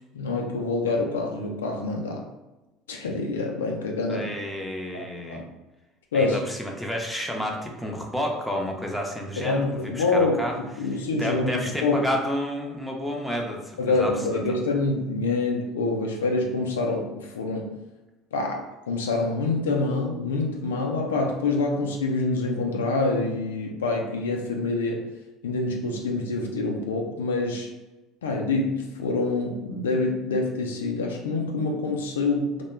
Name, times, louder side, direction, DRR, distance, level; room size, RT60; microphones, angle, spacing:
voice 1, 0.1-2.2 2.9-4.3 4.9-5.5 6.1-6.4 9.4-12.1 13.8-17.7 18.3-25.0 25.4-27.7 28.2-32.6, left 3 dB, 85° left, 1 dB, 0.4 m, -26 dB
voice 2, 4.1-5.4 6.1-10.9 11.1-14.6, equal, 5° left, 0 dB, 0.6 m, -31 dB
2.2 x 2.2 x 3.1 m, 1.1 s
hypercardioid pair, 70°, 0 cm